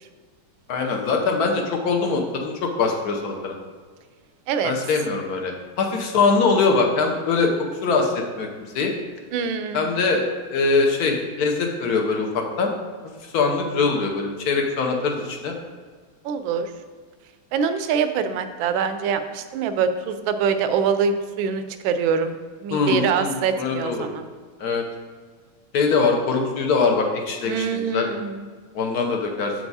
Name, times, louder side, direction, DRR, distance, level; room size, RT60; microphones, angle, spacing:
voice 1, 0.7-3.6 4.6-7.5 7.8-8.5 8.7-8.9 9.7-10.2 10.5-12.7 13.0-15.6 22.7-24.1 24.6-24.8 25.7-28.1 28.7-29.5, left 4 dB, 60° left, 2 dB, 1.0 m, -22 dB
voice 2, 9.3-9.8 16.2-16.7 17.5-22.4 22.6-24.3 27.5-28.4, right 6 dB, 75° right, 9 dB, 1.2 m, -24 dB
7.5 x 4.7 x 4.0 m, 1.5 s
omnidirectional pair, 2.4 m